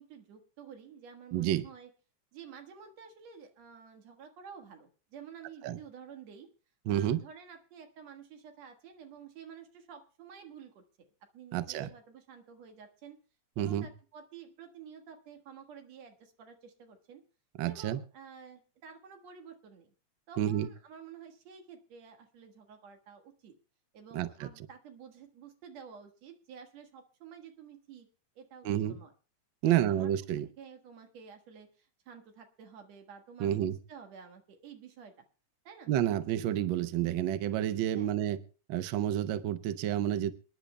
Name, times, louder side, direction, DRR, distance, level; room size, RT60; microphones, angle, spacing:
voice 1, 0.0-1.9 2.3-6.5 6.9-10.8 11.3-13.2 13.6-17.2 17.7-19.9 20.3-23.6 23.9-28.1 28.4-29.1 29.7-30.1 30.6-35.1 35.6-35.9 37.9-38.1, right 7 dB, 65° right, 5 dB, 2.7 m, -51 dB
voice 2, 1.3-1.6 5.6-5.8 6.9-7.2 11.5-11.9 13.6-13.9 17.6-18.0 20.4-20.7 24.1-24.5 28.6-29.0 29.6-30.5 33.4-33.8 35.9-38.4 38.7-40.3, right 11 dB, 85° right, 12 dB, 1.0 m, -29 dB
28.0 x 10.5 x 2.3 m, 0.35 s
omnidirectional pair, 3.3 m